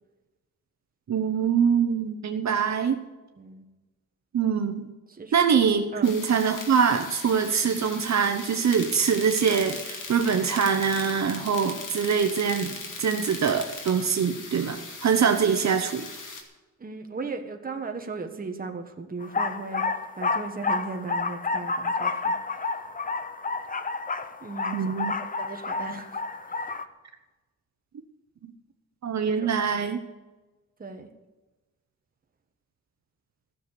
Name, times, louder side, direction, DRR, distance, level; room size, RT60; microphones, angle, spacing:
voice 1, 1.1-3.0 4.3-4.8 5.3-12.7 13.0-16.1 24.7-25.1 29.0-30.0, right 6 dB, 60° right, 5 dB, 1.0 m, -24 dB
sound 1, 6.0-16.4, left 4 dB, 80° left, 2.5 m, -39 dB
voice 2, 16.8-19.8 20.2-22.6 24.4-24.8 25.4-26.2 26.5-26.7 29.4-29.5 30.8-31.1, right 4 dB, 30° right, 4 dB, 1.4 m, -37 dB
sound 2, 19.2-26.8, left 4 dB, 25° left, 0.7 m, -30 dB
15.0 x 6.9 x 9.7 m, 1.2 s
wide cardioid pair, 155°, 31 cm